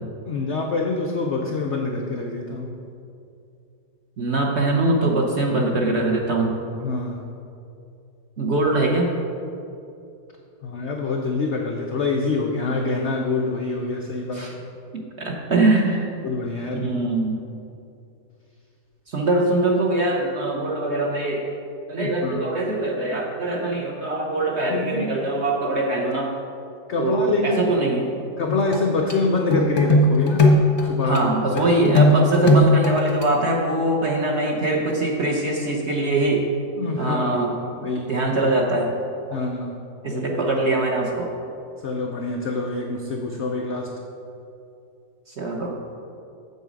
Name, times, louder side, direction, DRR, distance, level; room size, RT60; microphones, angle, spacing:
voice 1, 0.3-2.8 6.8-7.2 10.6-14.5 16.2-16.9 22.0-22.5 24.7-25.1 26.9-27.8 28.4-30.5 30.8-31.3 31.5-31.6 32.4-32.5 36.7-37.4 37.8-38.2 39.3-39.8 40.1-40.2 40.6-40.7 41.8-43.9, left 3 dB, 90° left, 1 dB, 0.6 m, -26 dB
voice 2, 4.2-6.6 8.4-9.1 14.4-14.5 14.9-16.1 16.7-17.4 19.1-21.5 21.9-26.3 27.0-28.0 31.0-36.5 37.0-37.5 38.1-38.9 40.0-41.3 45.3-45.7, right 2 dB, 50° right, 0 dB, 0.8 m, -22 dB
sound 1, 28.5-28.8 29.1-29.2 29.5-30.9 31.1-31.2 31.6-33.2, left 1 dB, 30° left, 0.6 m, -18 dB
8.0 x 7.1 x 5.1 m, 2.6 s
omnidirectional pair, 2.0 m